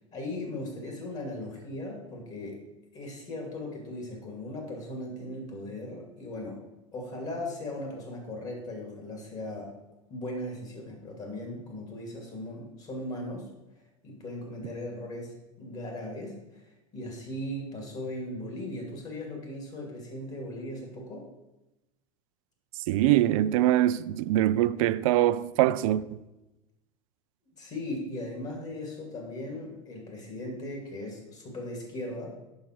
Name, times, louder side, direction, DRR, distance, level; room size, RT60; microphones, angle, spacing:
voice 1, 0.1-2.6 2.9-6.6 6.9-9.7 10.1-13.4 14.0-16.6 16.9-21.2 27.6-32.3, left 1 dB, 40° left, 2.4 m, -38 dB
voice 2, 22.9-26.0, right 14 dB, 70° right, 0.4 m, -23 dB
7.5 x 5.7 x 4.5 m
hypercardioid pair, 95°, 18 cm